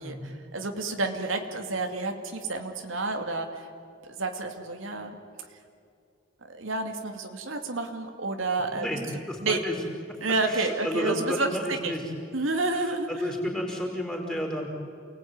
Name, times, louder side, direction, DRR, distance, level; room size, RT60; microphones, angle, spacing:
voice 1, 0.0-3.7 4.1-5.2 6.5-8.9 9.4-9.6 10.2-11.9 12.3-13.3, right 3 dB, 85° right, 4 dB, 2.5 m, -30 dB
voice 2, 9.3-9.7 10.5-12.0 12.8-14.7, equal, 5° left, -1 dB, 4.8 m, -32 dB
29.0 x 19.5 x 9.6 m, 2.4 s
head